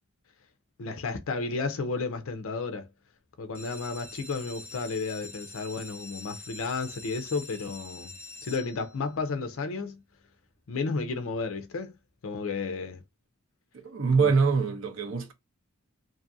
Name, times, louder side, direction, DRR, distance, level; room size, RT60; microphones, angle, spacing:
voice 1, 0.8-2.9 3.4-8.1 8.4-10.0 10.7-12.0 12.2-13.0 14.1-14.3, left 4 dB, 65° left, 0.5 m, -32 dB
sound 1, 3.4-9.2 9.8-10.3 10.7-10.8 11.0-11.1 11.5-11.6, left 3 dB, 10° left, 0.8 m, -45 dB
voice 2, 13.7-15.3, right 5 dB, 65° right, 0.7 m, -24 dB
2.6 x 2.4 x 2.5 m
head